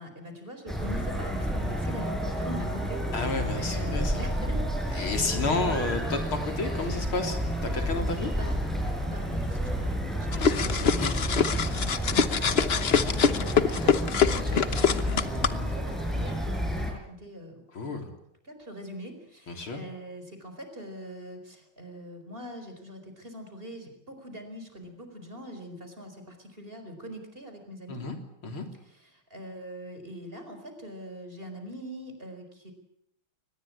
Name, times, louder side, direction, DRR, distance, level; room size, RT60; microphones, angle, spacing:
voice 1, 0.0-4.6 4.9-5.7 8.3-8.6 9.0-17.6 18.4-28.0 28.9-32.7, equal, 25° right, 6 dB, 4.6 m, -43 dB
sound 1, 0.7-16.9, equal, ahead, 5.6 m, -30 dB
voice 2, 3.1-4.2 5.0-8.3 11.0-11.1 13.0-13.1 17.7-18.1 19.5-19.8 27.9-28.2 28.4-28.7, left 3 dB, 80° left, 5 dB, 4.2 m, -31 dB
sound 2, 10.3-15.5, left 6 dB, 45° left, 0.9 m, -24 dB
23.5 x 20.5 x 8.6 m, 0.77 s
omnidirectional pair, 2.3 m